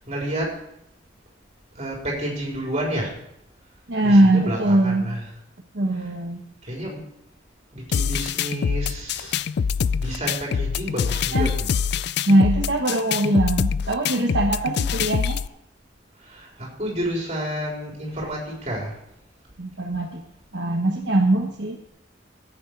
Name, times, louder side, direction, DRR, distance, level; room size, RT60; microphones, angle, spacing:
voice 1, 0.1-0.6 1.8-3.2 4.0-5.2 6.7-7.0 7.7-9.4 10.0-11.7 16.2-18.9, right 1 dB, 35° right, -3 dB, 3.9 m, -30 dB
voice 2, 3.9-5.1 5.7-6.4 11.3-11.5 12.3-15.4 19.6-20.2 20.5-21.8, right 1 dB, 65° right, 0 dB, 1.2 m, -21 dB
sound 1, 7.9-15.5, left 7 dB, 60° left, 0.3 m, -25 dB
14.5 x 8.4 x 4.6 m, 0.76 s
head